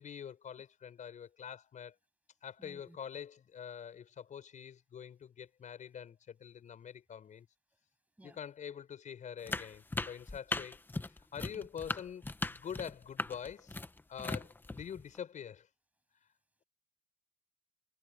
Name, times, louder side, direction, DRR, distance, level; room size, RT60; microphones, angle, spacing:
voice 1, 0.0-1.9 2.4-7.5 8.2-10.8 11.3-13.8 14.1-15.7, left 8 dB, 45° left, 6.2 m, -45 dB
voice 2, 2.6-3.0 8.2-8.4 10.5-10.6 11.5-11.7 14.2-14.5, right 1 dB, 10° right, 8.0 m, -56 dB
sound 1, 9.5-15.2, left 2 dB, 10° left, 1.0 m, -38 dB
cardioid pair, 110°, 17 cm